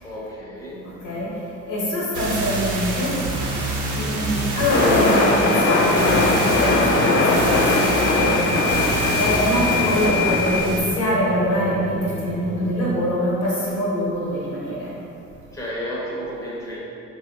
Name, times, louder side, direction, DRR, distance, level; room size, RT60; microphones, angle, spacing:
voice 1, 0.0-0.9 15.5-16.8, equal, 10° left, -6 dB, 0.7 m, -32 dB
voice 2, 1.7-3.1 3.9-8.9 9.1-14.9, left 1 dB, 80° left, -7 dB, 1.2 m, -24 dB
sound 1, 2.1-10.8, right 2 dB, 80° right, 0.6 m, -27 dB
sound 2, 4.7-10.6, left 3 dB, 45° left, 0.5 m, -20 dB
sound 3, 6.1-12.9, right 2 dB, 35° right, 0.5 m, -31 dB
3.2 x 2.5 x 2.8 m, 2.7 s
cardioid pair, 90°, 30 cm